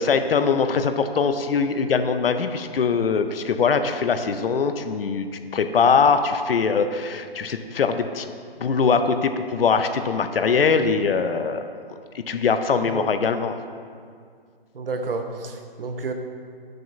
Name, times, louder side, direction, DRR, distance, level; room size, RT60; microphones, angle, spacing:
voice 1, 0.0-5.3 5.5-8.3 8.6-11.7 12.1-13.6, left 5 dB, 70° left, 9 dB, 0.5 m, -22 dB
voice 2, 14.7-16.1, right 3 dB, 65° right, 5 dB, 0.7 m, -30 dB
6.7 x 6.3 x 2.4 m, 2.2 s
figure-of-eight pair, 145°, 30 cm